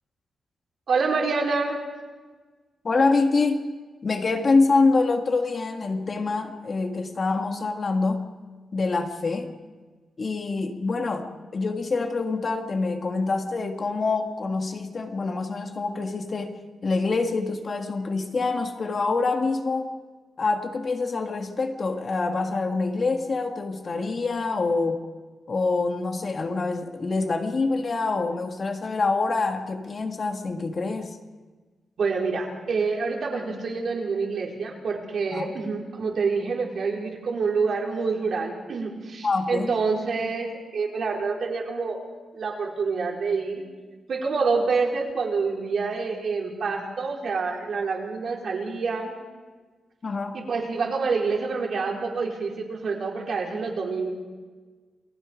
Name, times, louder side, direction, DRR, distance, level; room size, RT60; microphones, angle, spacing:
voice 1, 0.9-1.8 32.0-42.0 42.3-43.6 44.1-49.2 50.3-54.1, right 4 dB, 60° right, -1 dB, 4.2 m, -27 dB
voice 2, 2.8-3.7 4.0-8.3 8.7-9.5 10.2-16.6 16.8-19.9 20.4-25.1 25.5-31.2 35.3-35.5 39.2-39.8 50.0-50.4, left 3 dB, 40° left, 4 dB, 1.7 m, -25 dB
29.0 x 20.0 x 5.1 m, 1.4 s
wide cardioid pair, 155°, 0 cm